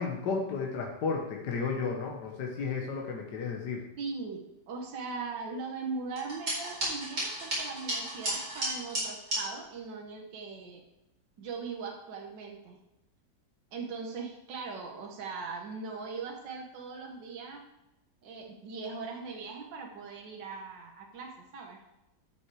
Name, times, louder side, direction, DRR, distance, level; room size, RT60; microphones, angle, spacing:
voice 1, 0.0-3.8, left 5 dB, 70° left, 0 dB, 1.7 m, -33 dB
voice 2, 4.0-10.8 11.4-12.8 13.7-17.6 18.2-21.8, right 4 dB, 80° right, 1 dB, 1.8 m, -40 dB
sound 1, 6.2-9.4, right 1 dB, 60° right, 5.1 m, -33 dB
13.0 x 6.1 x 4.8 m, 0.94 s
omnidirectional pair, 1.9 m